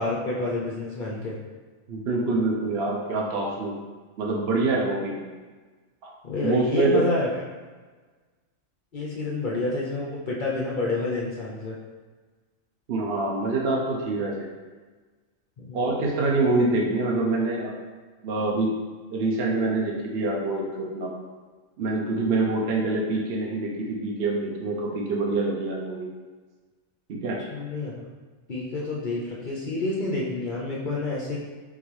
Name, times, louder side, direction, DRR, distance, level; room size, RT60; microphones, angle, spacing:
voice 1, 0.0-1.4 6.2-7.3 8.9-11.8 15.6-15.8 27.5-28.1 28.5-31.4, left 2 dB, 55° left, -5 dB, 0.6 m, -29 dB
voice 2, 1.9-3.7 4.2-5.2 6.0-6.1 6.4-7.1 12.9-14.5 15.7-17.7 18.2-18.7 19.1-21.1 21.8-26.1 27.1-27.4, right 2 dB, 60° right, -2 dB, 0.7 m, -25 dB
3.8 x 3.7 x 3.1 m, 1.4 s
omnidirectional pair, 1.4 m